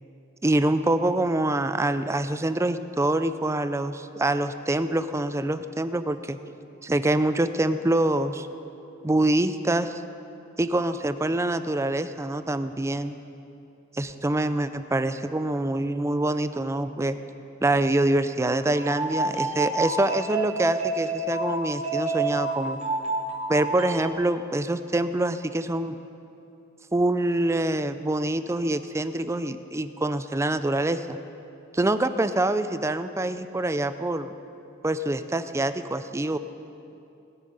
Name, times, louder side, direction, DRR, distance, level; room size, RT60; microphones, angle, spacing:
voice 1, 0.4-6.4 6.8-8.5 9.0-10.0 10.6-13.2 13.9-17.2 17.6-22.8 23.5-26.0 26.9-31.2 31.7-34.3 34.8-36.4, right 1 dB, 15° right, 11 dB, 0.4 m, -25 dB
sound 1, 18.7-24.1, right 2 dB, 35° right, 1.2 m, -29 dB
19.5 x 8.6 x 5.5 m, 2.7 s
head